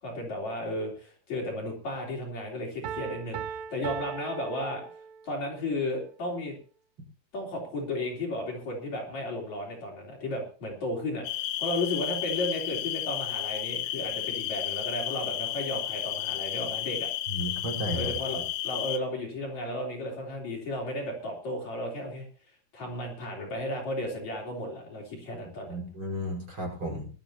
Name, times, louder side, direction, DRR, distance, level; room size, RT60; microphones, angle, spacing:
voice 1, 0.0-4.8 5.2-6.6 7.3-17.1 17.9-18.4 18.6-22.3 22.7-25.8, left 1 dB, 45° left, -3 dB, 4.7 m, -34 dB
Piano, 2.8-5.4, right 8 dB, 90° right, 2.8 m, -38 dB
sound 1, 11.2-19.0, left 13 dB, 85° left, 3.2 m, -32 dB
voice 2, 17.3-18.1 25.7-27.1, equal, 30° right, -1 dB, 5.9 m, -33 dB
20.5 x 13.0 x 2.9 m, 0.40 s
omnidirectional pair, 4.7 m